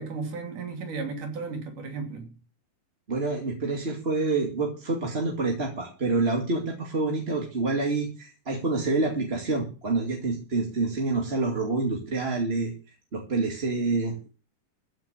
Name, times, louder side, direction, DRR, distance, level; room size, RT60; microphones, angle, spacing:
voice 1, 0.0-2.3, right 4 dB, 70° right, 4.3 m, -34 dB
voice 2, 3.1-12.7 13.1-14.3, right 3 dB, 20° right, 2.1 m, -27 dB
14.5 x 5.7 x 9.0 m
omnidirectional pair, 3.8 m